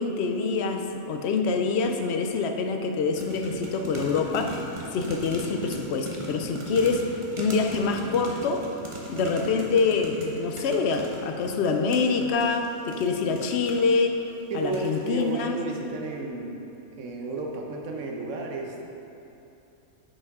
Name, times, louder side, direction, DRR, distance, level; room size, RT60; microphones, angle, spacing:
voice 1, 0.0-4.5 4.9-8.7 9.1-14.2 14.5-15.6, left 4 dB, 60° left, 4 dB, 0.7 m, -25 dB
sound 1, 3.2-14.0 14.5-14.9 15.2-15.3, right 1 dB, 25° right, 0.8 m, -38 dB
voice 2, 14.5-18.8, right 2 dB, 65° right, 1 dB, 1.1 m, -33 dB
9.6 x 5.2 x 3.6 m, 2.9 s
omnidirectional pair, 1.5 m